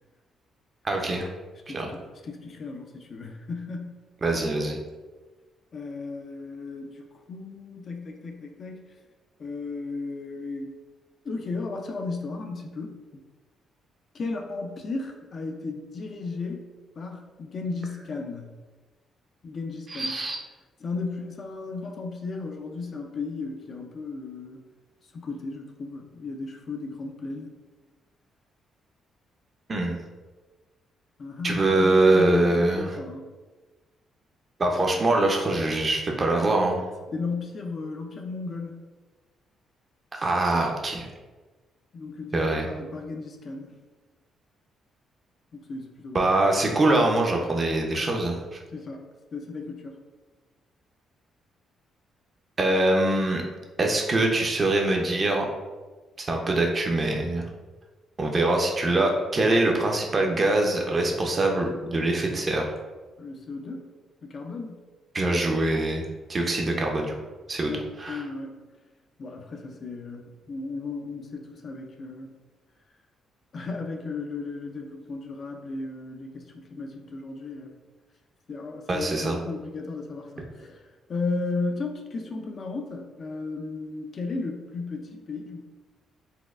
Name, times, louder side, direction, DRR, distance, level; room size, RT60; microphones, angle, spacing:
voice 1, 0.8-1.3 1.7-1.9 4.2-4.8 19.9-20.4 29.7-30.0 31.4-32.9 34.6-36.8 40.1-41.1 42.3-42.7 46.1-48.6 52.6-53.4 53.8-55.5 56.2-57.5 58.2-62.7 65.1-66.0 66.3-67.1 67.5-67.7 68.0-68.2 78.9-79.4, right 2 dB, 35° right, 1 dB, 0.5 m, -23 dB
voice 2, 1.7-4.0 4.3-4.6 5.7-8.8 9.4-10.7 11.2-13.2 14.1-16.7 17.0-18.5 19.4-20.2 20.8-24.6 25.1-27.5 31.2-33.3 37.1-38.8 41.9-43.8 45.5-46.3 48.7-49.0 49.3-50.0 63.2-63.9 64.2-64.8 67.7-67.8 68.1-68.6 69.2-72.3 73.5-77.8 78.5-85.6, left 3 dB, 50° left, 3 dB, 0.4 m, -35 dB
4.1 x 2.3 x 2.4 m, 1.3 s
cardioid pair, 90°, 0 cm